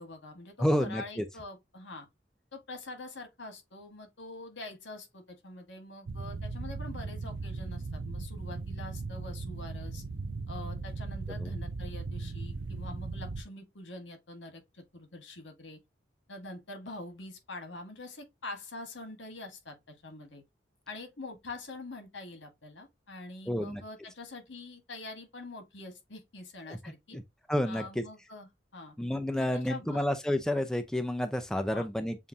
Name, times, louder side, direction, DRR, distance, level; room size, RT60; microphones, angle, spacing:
voice 1, 0.0-2.1 2.5-10.0 10.5-15.8 16.3-20.4 20.9-27.2 27.7-29.0 29.4-30.0 31.7-31.9, left 2 dB, 85° left, 1.7 m, -45 dB
voice 2, 0.6-1.2 11.4-11.5 23.5-23.8 26.7-27.2 27.5-28.0 29.0-32.2, left 1 dB, 5° left, 0.5 m, -30 dB
sound 1, 6.1-13.4, right 3 dB, 85° right, 0.6 m, -38 dB
7.2 x 2.6 x 2.8 m
head